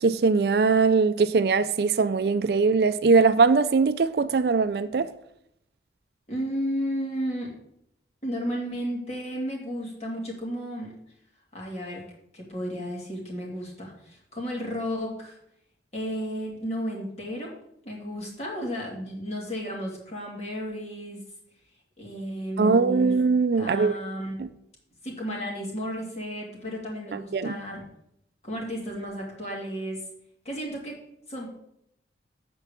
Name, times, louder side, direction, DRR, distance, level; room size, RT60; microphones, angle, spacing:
voice 1, 0.0-5.1 22.6-23.9 24.4-24.5 27.1-27.6, right 4 dB, 60° right, 0.4 m, -21 dB
voice 2, 6.3-7.5 8.2-10.9 11.5-12.0 12.3-15.4 15.9-17.5 17.8-21.2 22.0-23.1 23.6-24.3 25.0-27.8 28.4-30.0 30.4-31.0 31.3-31.5, equal, 35° left, 2.4 m, -33 dB
8.0 x 4.6 x 6.9 m
head